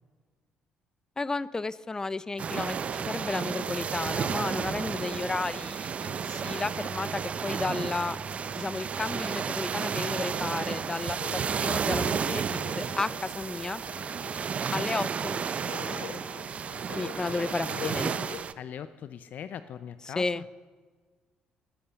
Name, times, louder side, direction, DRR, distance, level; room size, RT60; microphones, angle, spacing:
voice 1, 1.2-8.2 8.6-11.2 11.6-12.0 12.3-12.4 12.8-13.8 14.7-15.4 15.7-16.2 17.0-18.2 20.2-20.4, left 3 dB, 20° left, 18 dB, 0.6 m, -33 dB
sound 1, 2.3-5.6 6.0-8.9 9.9-18.4, left 8 dB, 85° left, 1.1 m, -47 dB
sound 2, 2.4-18.5, right 6 dB, 45° right, 0.7 m, -32 dB
Frog, 2.5-8.5 9.3-11.8, right 7 dB, 70° right, 1.3 m, -48 dB
voice 2, 18.6-20.5, left 9 dB, 60° left, 12 dB, 0.7 m, -41 dB
19.5 x 8.7 x 7.0 m, 1.5 s
cardioid pair, 85°, 3 cm